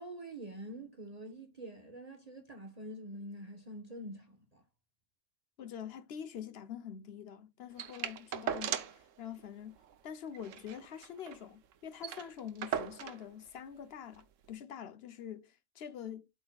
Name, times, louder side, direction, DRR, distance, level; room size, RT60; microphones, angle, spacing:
voice 1, 0.0-4.6, right 1 dB, 30° right, 1.2 m, -46 dB
voice 2, 5.6-9.8 10.0-16.3, left 8 dB, 55° left, 0.9 m, -45 dB
sound 1, 7.8-9.1 9.4-9.5 9.8-9.9 10.3-11.4 11.7-11.8 12.0-13.3 14.1-14.2, right 8 dB, 75° right, 1.1 m, -38 dB
12.5 x 4.4 x 2.3 m
omnidirectional pair, 1.3 m